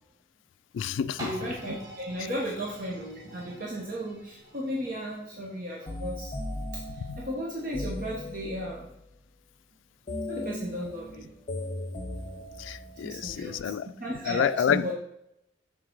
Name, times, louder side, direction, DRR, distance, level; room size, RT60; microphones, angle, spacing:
voice 1, 0.7-1.3 7.0-7.2 12.6-13.9 14.2-14.9, left 8 dB, 85° left, 12 dB, 0.3 m, -29 dB
sound 1, 1.2-6.9 7.5-7.6, left 1 dB, 20° right, 1.6 m, -43 dB
voice 2, 1.3-6.3 6.7-6.8 7.2-8.9 10.3-11.3 13.0-13.7 14.0-14.9, equal, 45° right, -3 dB, 1.0 m, -35 dB
sound 2, 5.9-8.8 10.1-13.4, left 1 dB, 35° left, 0.7 m, -37 dB
6.6 x 3.9 x 4.5 m, 0.81 s
head